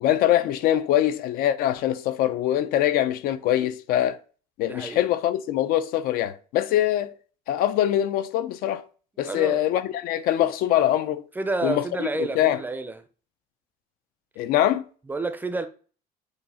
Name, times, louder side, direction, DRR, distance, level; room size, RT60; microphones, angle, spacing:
voice 1, 0.0-4.2 4.6-7.1 7.5-8.8 9.2-11.3 11.6-11.8 12.2-12.6 14.4-14.9, left 12 dB, 60° left, 0.7 m, -23 dB
voice 2, 4.7-5.1 9.2-9.6 11.4-13.0 15.1-15.7, right 2 dB, 10° right, 0.6 m, -29 dB
8.1 x 2.8 x 5.6 m
cardioid pair, 155°, 17 cm